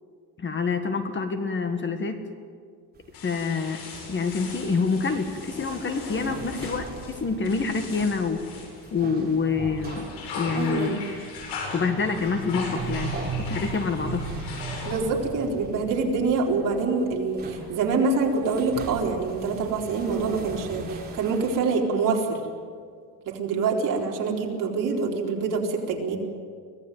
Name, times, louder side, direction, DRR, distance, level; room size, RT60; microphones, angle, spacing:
voice 1, 0.4-2.2 3.2-3.8 4.1-8.4 8.9-10.1 10.3-11.0 11.7-14.2, left 5 dB, 30° left, 7 dB, 1.7 m, -27 dB
sound 1, 2.9-21.6, right 4 dB, 25° right, 3.6 m, -38 dB
sound 2, 3.1-9.3 9.7-15.3, left 4 dB, 85° left, 7.9 m, -39 dB
voice 2, 10.5-11.0 14.8-22.4 23.3-26.2, right 4 dB, 55° right, 0 dB, 4.2 m, -25 dB
24.5 x 17.5 x 9.4 m, 2.1 s
cardioid pair, 150°, 39 cm